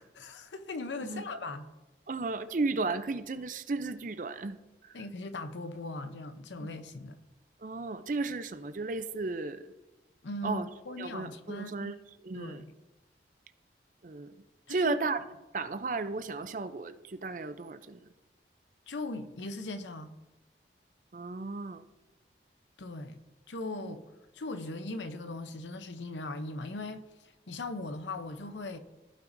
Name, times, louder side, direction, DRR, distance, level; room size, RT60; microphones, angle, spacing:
voice 1, 0.0-1.7 4.9-7.2 10.2-11.9 12.3-12.7 14.7-15.0 18.9-20.1 22.8-23.2 23.5-24.0 24.3-28.8, left 2 dB, 90° left, 0.7 m, -39 dB
voice 2, 2.1-5.0 6.6-6.8 7.6-9.7 10.4-10.7 11.0-12.0 12.2-12.6 14.0-14.4 14.7-15.2 15.5-18.1 21.1-21.8 23.8-23.9, right 3 dB, 45° right, 0.5 m, -34 dB
15.5 x 5.8 x 2.6 m
head